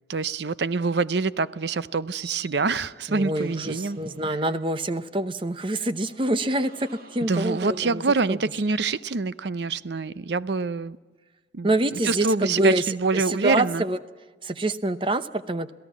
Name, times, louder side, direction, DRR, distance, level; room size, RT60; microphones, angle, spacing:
voice 1, 0.1-4.0 7.3-11.0 11.5-13.8, right 4 dB, 75° right, 0.6 m, -26 dB
sound 1, 1.2-9.0, right 2 dB, 55° right, 2.2 m, -53 dB
voice 2, 3.1-8.4 11.6-14.0 14.4-15.7, right 1 dB, 30° right, 0.8 m, -26 dB
27.5 x 17.0 x 7.3 m
head